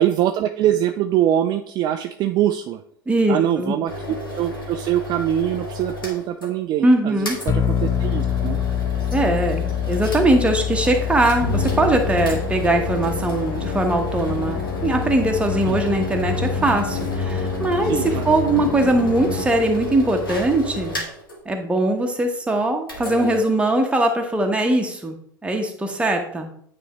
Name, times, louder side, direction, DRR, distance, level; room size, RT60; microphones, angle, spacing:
voice 1, 0.0-2.8 3.3-8.6 15.7-15.8 17.8-18.3, right 11 dB, 40° right, 7 dB, 0.4 m, -23 dB
voice 2, 3.1-3.8 6.8-7.4 9.1-17.9 18.2-21.0 21.5-25.2 25.4-26.5, right 2 dB, 10° right, 3 dB, 1.0 m, -21 dB
sound 1, 3.9-6.5 6.8-6.9 7.3-21.4 22.8-23.4, left 1 dB, 80° left, 1.6 m, -33 dB
sound 2, 7.5-20.9, left 9 dB, 25° left, 0.5 m, -28 dB
Musical instrument, 11.4-19.9, left 4 dB, 45° left, 1.0 m, -28 dB
9.2 x 3.4 x 3.0 m, 0.64 s
figure-of-eight pair, 75°, 11 cm